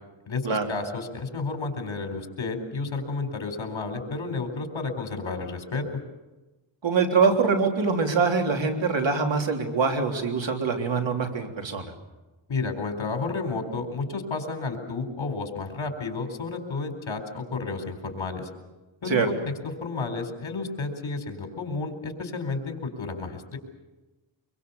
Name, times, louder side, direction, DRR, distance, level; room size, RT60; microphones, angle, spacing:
voice 1, 0.3-5.8 12.5-18.5 19.0-19.4 19.6-23.6, left 3 dB, 70° left, 6 dB, 4.2 m, -31 dB
voice 2, 6.8-11.9 19.1-19.3, right 5 dB, 65° right, 3 dB, 3.5 m, -24 dB
25.0 x 23.5 x 7.1 m, 1.1 s
wide cardioid pair, 105°, 47 cm